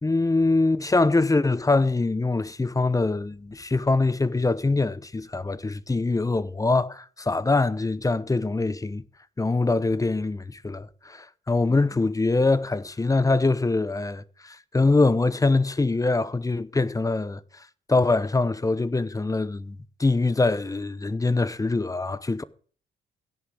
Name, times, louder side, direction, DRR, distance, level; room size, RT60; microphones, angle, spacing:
voice 1, 0.0-9.0 9.4-17.4 17.9-22.4, left 3 dB, 15° left, 0.8 m, -23 dB
16.5 x 7.0 x 6.2 m
cardioid pair, 90°, 20 cm